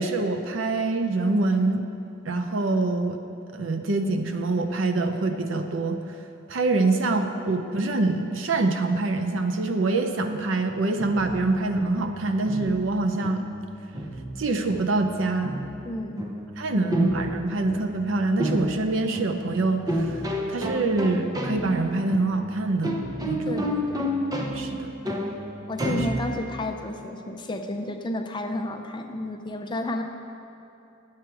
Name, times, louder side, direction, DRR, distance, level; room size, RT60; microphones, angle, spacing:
voice 1, 0.0-1.8 2.3-3.2 3.5-6.0 6.5-13.4 14.4-15.5 16.6-20.2 20.5-23.0 23.2-23.6 24.5-24.9 25.9-26.1, right 3 dB, 70° right, 6 dB, 0.6 m, -25 dB
sound 1, 11.0-26.7, equal, 20° right, 0.7 m, -31 dB
voice 2, 15.9-16.2 16.7-17.0 23.5-24.1 25.7-30.0, left 1 dB, 25° left, 5 dB, 0.5 m, -32 dB
9.0 x 7.6 x 4.6 m, 2.8 s
head